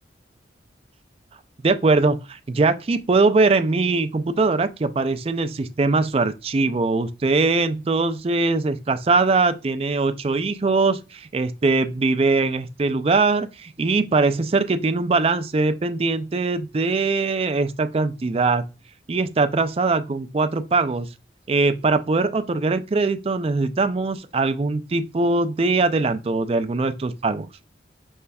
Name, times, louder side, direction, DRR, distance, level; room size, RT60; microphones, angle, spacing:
voice 1, 1.6-18.6 19.1-21.1 21.5-27.5, right 3 dB, 30° right, 0.4 m, -21 dB
5.5 x 3.3 x 2.2 m
head